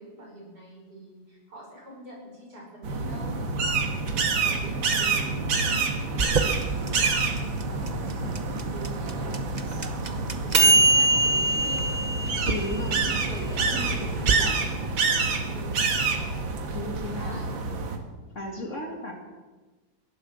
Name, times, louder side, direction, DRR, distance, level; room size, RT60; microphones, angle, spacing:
voice 1, 0.0-7.4 7.7-8.2 8.5-9.6 10.0-12.0 12.6-16.4 17.2-17.6, right 1 dB, 55° right, -3 dB, 5.8 m, -45 dB
sound 1, 2.8-18.0, right 4 dB, 90° right, 2.3 m, -28 dB
sound 2, 6.2-14.4, right 2 dB, 35° right, 0.7 m, -24 dB
voice 2, 12.4-13.0 13.6-14.6 16.7-17.4 18.3-19.1, left 2 dB, 40° left, 0 dB, 2.5 m, -35 dB
16.0 x 11.5 x 7.3 m, 1.3 s
omnidirectional pair, 2.1 m